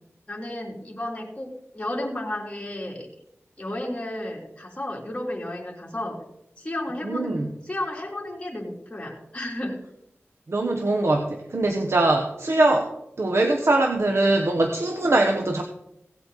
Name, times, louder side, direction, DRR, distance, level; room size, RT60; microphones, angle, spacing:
voice 1, 0.3-3.1 3.6-6.2 6.6-9.8, left 1 dB, 25° left, -2 dB, 3.3 m, -32 dB
voice 2, 7.0-7.5 10.5-12.9 13.2-15.6, right 2 dB, 65° right, 3 dB, 1.2 m, -22 dB
17.0 x 8.3 x 4.1 m, 0.80 s
wide cardioid pair, 65°, 5 cm